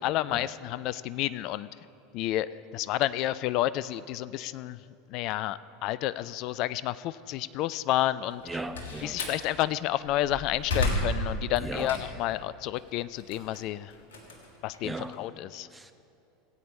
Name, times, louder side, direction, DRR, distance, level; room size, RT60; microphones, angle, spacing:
voice 1, 0.0-1.7 2.1-4.8 5.1-8.4 9.0-13.9 14.6-15.7, left 14 dB, 45° left, 17 dB, 0.3 m, -30 dB
Slam, 8.3-9.4 10.0-12.4 12.8-15.2, left 1 dB, 65° left, 1.7 m, -32 dB
voice 2, 8.5-9.2 11.6-11.9 14.8-15.2 15.7-15.9, right 2 dB, 10° right, 8 dB, 0.7 m, -37 dB
17.5 x 8.5 x 4.2 m, 2.7 s
figure-of-eight pair, 80°, 0 cm